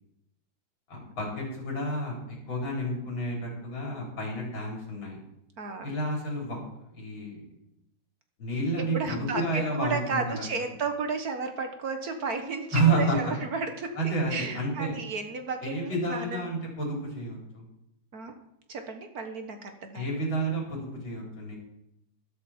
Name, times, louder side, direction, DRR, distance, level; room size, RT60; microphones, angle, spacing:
voice 1, 0.9-5.2 5.8-6.6 6.9-7.4 8.4-10.5 12.7-13.3 14.0-15.0 15.6-17.6 19.9-21.6, right 2 dB, 85° left, -1 dB, 4.9 m, -30 dB
voice 2, 5.6-5.9 8.8-16.4 18.1-18.3 18.7-20.0, right 4 dB, 50° right, 6 dB, 1.7 m, -33 dB
13.0 x 12.5 x 4.4 m, 0.84 s
omnidirectional pair, 2.1 m